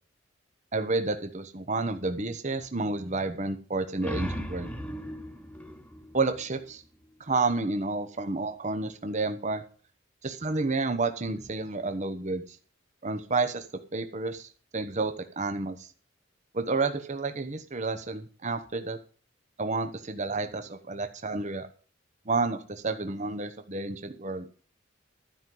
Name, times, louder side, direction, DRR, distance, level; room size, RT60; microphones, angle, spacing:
voice 1, 0.7-4.7 6.1-6.8 7.2-9.6 10.2-12.4 13.0-13.6 13.9-15.8 16.5-19.0 19.6-21.7 22.3-24.5, right 3 dB, 35° right, 8 dB, 1.0 m, -30 dB
sound 1, 3.7-7.2, equal, 5° left, 1.2 m, -38 dB
12.5 x 5.4 x 7.7 m, 0.40 s
head